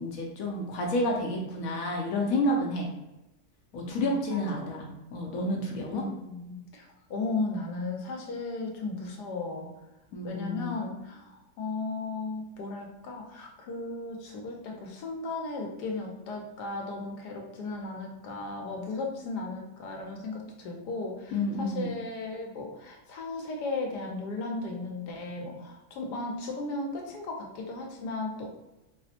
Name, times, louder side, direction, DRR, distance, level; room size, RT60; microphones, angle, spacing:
voice 1, 0.0-2.9 3.7-6.0 10.1-10.8 21.3-21.9, left 1 dB, 70° left, 0 dB, 0.9 m, -30 dB
voice 2, 4.0-4.9 5.9-9.7 10.2-28.5, left 3 dB, 85° left, 0 dB, 1.3 m, -36 dB
4.2 x 2.0 x 2.8 m, 0.98 s
omnidirectional pair, 1.7 m